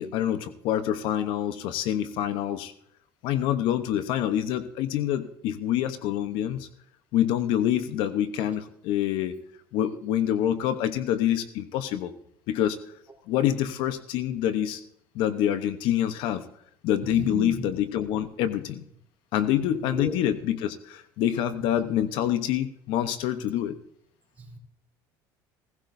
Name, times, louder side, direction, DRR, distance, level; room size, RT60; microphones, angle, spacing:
voice 1, 0.0-2.7 3.2-6.7 7.1-9.3 9.7-12.1 12.5-12.8 13.3-14.8 15.1-16.5 16.8-18.8 19.3-23.8, left 11 dB, 70° left, 11 dB, 0.9 m, -26 dB
voice 2, 17.1-17.5 19.9-20.2 24.4-24.6, right 3 dB, 20° right, 0 dB, 3.5 m, -34 dB
17.5 x 16.0 x 2.7 m, 0.68 s
cardioid pair, 120°, 9 cm